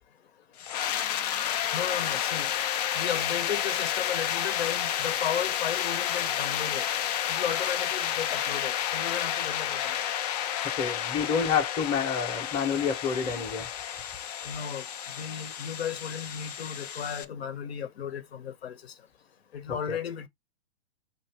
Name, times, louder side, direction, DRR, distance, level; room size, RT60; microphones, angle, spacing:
sound 1, 0.6-17.2, left 10 dB, 35° left, 0.5 m, -31 dB
voice 1, 1.7-2.5 2.9-6.9 7.3-10.0 14.4-14.9 15.1-18.9 19.5-20.3, left 8 dB, 65° left, 0.9 m, -34 dB
voice 2, 10.8-13.7 19.9-20.0, left 6 dB, 15° left, 0.8 m, -28 dB
5.5 x 2.5 x 3.4 m
hypercardioid pair, 135°, 34 cm